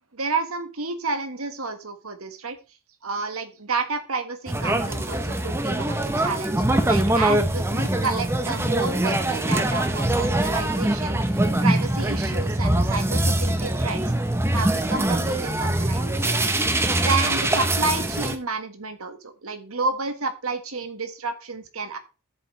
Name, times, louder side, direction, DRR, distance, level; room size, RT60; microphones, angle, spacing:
voice 1, 0.1-2.6 3.0-14.0 14.5-16.4 17.0-22.0, right 4 dB, 80° right, 8 dB, 1.6 m, -30 dB
sound 1, 4.5-18.4, right 1 dB, 10° right, 0.8 m, -23 dB
13.5 x 7.1 x 3.2 m, 0.30 s
head